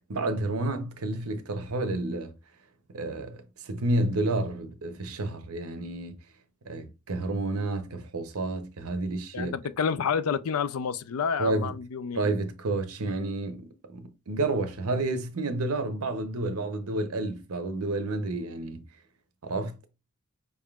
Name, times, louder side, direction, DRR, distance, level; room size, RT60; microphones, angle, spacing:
voice 1, 0.1-2.3 2.9-3.4 3.6-6.1 6.7-9.5 11.4-11.7 12.1-18.8 19.4-19.8, right 2 dB, 85° right, 0.8 m, -30 dB
voice 2, 9.3-12.2, left 6 dB, 80° left, 0.4 m, -29 dB
5.3 x 3.5 x 2.4 m
head